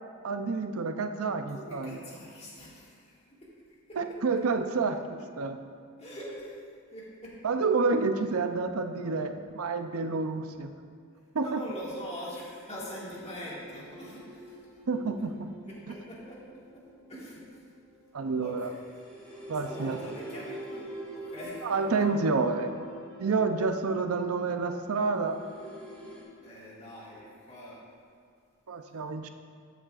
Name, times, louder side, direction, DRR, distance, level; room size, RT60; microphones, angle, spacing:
voice 1, 0.2-2.0 4.0-5.0 5.4-5.6 7.4-10.7 11.3-11.6 14.9-15.3 18.1-18.7 19.5-20.0 21.6-22.7 23.2-25.4 28.7-29.3, right 4 dB, 75° right, 7 dB, 0.6 m, -29 dB
voice 2, 1.5-3.4 3.7-4.0 6.0-6.6 6.9-7.3 7.9-8.0 11.4-14.6 15.6-16.4 16.7-16.8 17.1-17.7 18.4-18.8 19.2-22.0 26.4-27.8, equal, 30° left, -6 dB, 2.0 m, -43 dB
sound 1, 12.7-26.2, equal, 5° left, 1.8 m, -46 dB
13.0 x 7.3 x 2.5 m, 2.3 s
head